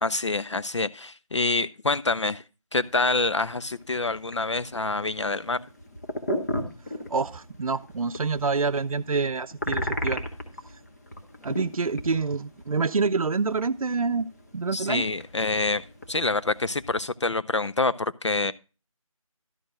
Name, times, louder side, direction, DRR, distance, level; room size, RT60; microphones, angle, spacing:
voice 1, 0.0-2.4 2.7-5.7 14.7-18.5, left 3 dB, 55° left, 15 dB, 0.4 m, -26 dB
sound 1, 2.7-17.1, left 1 dB, 30° left, 1.4 m, -37 dB
voice 2, 6.9-10.2 11.4-14.3 14.5-15.1, right 4 dB, 75° right, 8 dB, 0.5 m, -27 dB
12.5 x 4.4 x 6.4 m, 0.33 s
figure-of-eight pair, 175°, 18 cm